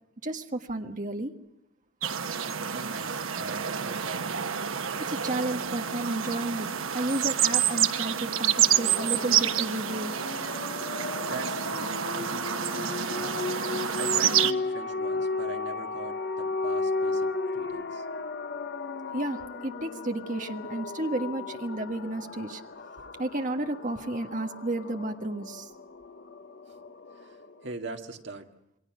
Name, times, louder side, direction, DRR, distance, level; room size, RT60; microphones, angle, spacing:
voice 1, 0.2-1.3 5.1-6.7 6.9-10.1 19.1-22.6 23.2-25.7, right 2 dB, 40° right, 5 dB, 1.5 m, -32 dB
sound 1, 2.0-14.5, right 9 dB, 90° right, 1.1 m, -28 dB
voice 2, 2.7-4.5 11.2-13.5 14.0-18.1 23.0-23.1 26.7-26.8 27.1-28.5, right 2 dB, 60° right, 4 dB, 2.2 m, -42 dB
sound 2, 8.3-27.7, left 3 dB, 55° left, 1.1 m, -35 dB
28.5 x 22.0 x 6.2 m, 0.83 s
head